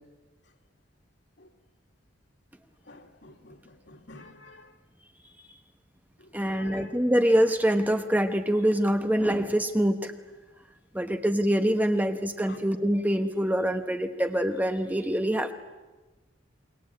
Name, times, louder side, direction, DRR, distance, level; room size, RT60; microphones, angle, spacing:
voice 1, 2.9-4.7 6.4-6.9 12.5-12.6, left 2 dB, 60° left, 3 dB, 2.9 m, -48 dB
voice 2, 6.3-10.1 10.9-15.5, equal, 10° right, 7 dB, 1.1 m, -25 dB
28.5 x 22.5 x 8.7 m, 1.2 s
head